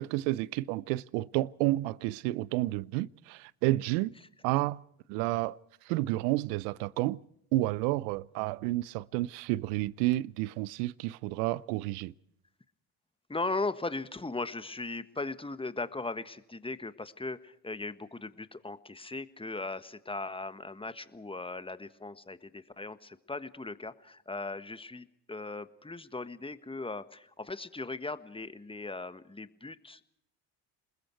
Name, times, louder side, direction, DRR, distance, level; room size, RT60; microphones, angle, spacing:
voice 1, 0.0-4.1 4.4-4.8 5.1-5.6 5.9-7.2 7.5-12.1, right 18 dB, 75° right, 0.7 m, -30 dB
voice 2, 13.3-30.0, left 3 dB, 10° left, 1.4 m, -38 dB
29.0 x 20.5 x 4.6 m
hypercardioid pair, 60°, 48 cm